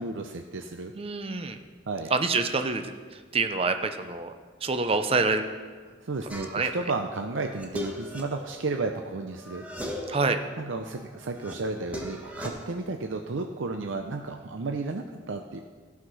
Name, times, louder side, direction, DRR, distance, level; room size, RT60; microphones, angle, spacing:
voice 1, 0.0-0.9 1.9-2.1 6.0-9.7 10.6-15.6, right 3 dB, 75° right, 4 dB, 0.6 m, -33 dB
voice 2, 0.9-1.6 2.1-2.9 3.3-4.3 4.6-5.5 6.5-6.7 10.1-10.4, right 3 dB, 30° right, 7 dB, 0.6 m, -26 dB
sound 1, 6.3-6.8 7.2-9.1 9.4-10.3 10.7-12.5, left 1 dB, 10° right, 1.1 m, -38 dB
14.0 x 5.9 x 6.2 m, 1.5 s
head